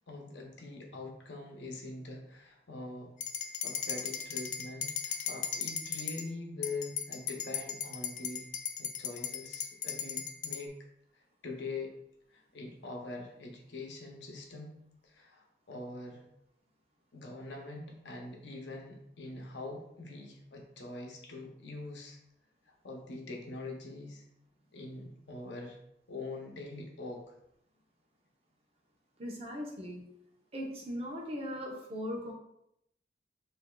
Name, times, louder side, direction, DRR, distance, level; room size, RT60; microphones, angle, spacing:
voice 1, 0.1-3.1 3.6-8.5 8.8-10.7 11.4-11.9 12.3-16.2 17.1-22.2 22.7-24.2 24.7-25.8 26.1-27.3, left 2 dB, 80° left, 1 dB, 0.8 m, -43 dB
sound 1, 3.2-6.3 6.6-10.6, left 8 dB, 45° left, 0.3 m, -37 dB
voice 2, 29.2-30.0 30.5-32.3, equal, 35° right, -1 dB, 0.8 m, -39 dB
6.8 x 2.6 x 2.3 m, 0.79 s
head